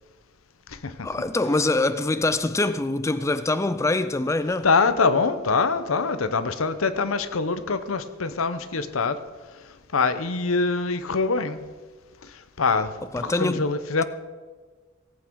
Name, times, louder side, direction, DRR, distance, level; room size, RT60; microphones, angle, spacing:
voice 1, 1.0-4.7 13.1-13.6, left 2 dB, 15° left, 0.3 m, -24 dB
voice 2, 4.6-9.2 9.9-11.6 12.6-12.9 13.2-14.0, left 4 dB, 90° left, 0.8 m, -24 dB
17.5 x 8.5 x 4.7 m
head